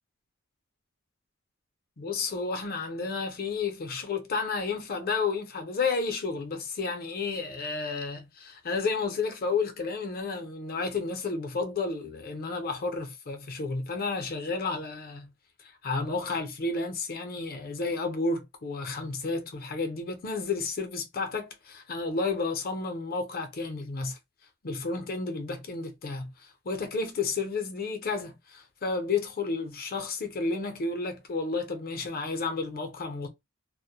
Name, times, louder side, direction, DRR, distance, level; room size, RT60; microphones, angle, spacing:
voice 1, 2.0-15.3 15.6-24.2 24.6-33.3, left 4 dB, 45° left, 0.6 m, -31 dB
2.1 x 2.1 x 2.8 m
head